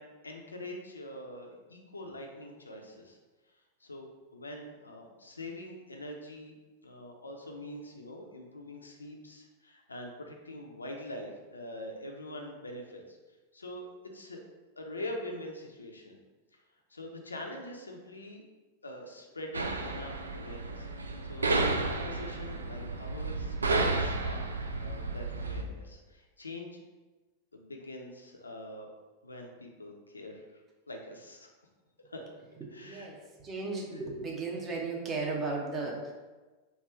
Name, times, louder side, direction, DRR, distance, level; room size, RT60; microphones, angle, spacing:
voice 1, 0.0-3.2 3.8-4.1 4.3-6.6 6.8-13.2 13.5-13.9 14.1-14.5 14.8-16.2 16.9-18.4 18.8-21.6 21.9-24.4 24.7-26.8 27.5-28.9 29.2-30.4 30.9-31.5 32.1-32.2 32.7-33.1, left 1 dB, 80° left, 2 dB, 0.5 m, -44 dB
sound 1, 19.5-25.6, right 3 dB, 75° right, 0.3 m, -32 dB
voice 2, 32.8-36.1, right 3 dB, 25° right, -1 dB, 0.8 m, -35 dB
3.4 x 2.4 x 4.3 m, 1.2 s
figure-of-eight pair, 90°, 0 cm